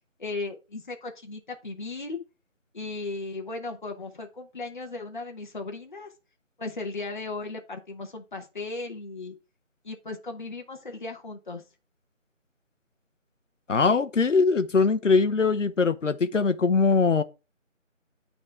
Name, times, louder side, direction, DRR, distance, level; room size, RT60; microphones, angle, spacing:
voice 1, 0.2-2.2 2.7-6.1 6.6-9.3 9.8-11.6, left 3 dB, 40° left, 1.1 m, -36 dB
voice 2, 13.7-17.2, left 4 dB, 70° left, 1.0 m, -22 dB
9.3 x 4.2 x 4.5 m
figure-of-eight pair, 170°, 39 cm